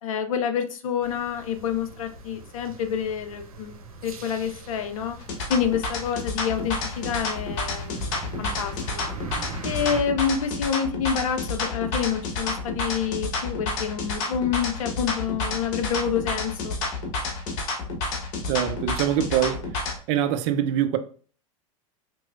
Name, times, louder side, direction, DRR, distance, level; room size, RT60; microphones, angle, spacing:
voice 1, 0.0-3.7 4.0-5.2 5.5-9.1 9.6-16.8, left 7 dB, 70° left, 0.7 m, -28 dB
sound 1, 1.0-10.0, right 4 dB, 85° right, 0.8 m, -41 dB
sound 2, 5.2-20.0, left 3 dB, 55° left, 1.3 m, -30 dB
voice 2, 18.5-19.6 20.1-21.0, right 10 dB, 55° right, 0.6 m, -23 dB
4.6 x 3.0 x 2.5 m
hypercardioid pair, 90°, 18 cm